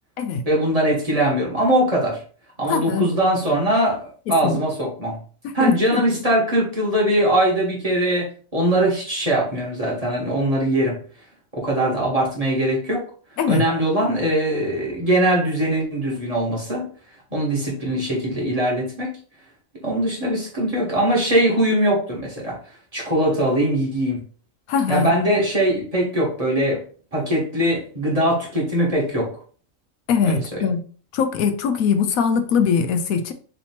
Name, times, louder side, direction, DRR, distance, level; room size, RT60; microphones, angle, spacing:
voice 1, 0.4-2.2 2.6-5.2 5.5-11.0 11.5-13.0 13.5-16.8 17.3-19.1 19.8-22.6 22.9-24.2 24.9-26.8 27.1-29.3 30.2-30.6, right 1 dB, 25° right, -3 dB, 1.3 m, -21 dB
voice 2, 2.7-3.1 4.3-4.6 5.4-6.0 13.4-13.6 24.7-25.1 30.1-30.8 31.1-33.3, left 6 dB, 80° left, 8 dB, 1.0 m, -21 dB
3.3 x 2.9 x 4.2 m, 0.42 s
omnidirectional pair, 1.5 m